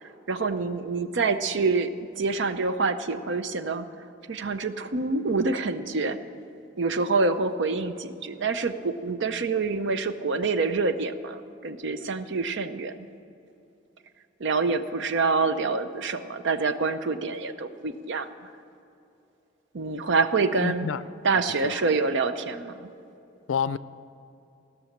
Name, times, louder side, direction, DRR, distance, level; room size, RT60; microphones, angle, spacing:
voice 1, 0.3-3.9 4.3-6.2 6.8-13.1 14.4-18.3 19.7-20.9 21.2-22.9, right 4 dB, 65° right, 10 dB, 0.7 m, -26 dB
voice 2, 20.6-21.0 21.6-21.8 23.5-23.8, left 6 dB, 80° left, 16 dB, 0.4 m, -28 dB
17.0 x 6.3 x 8.7 m, 2.8 s
head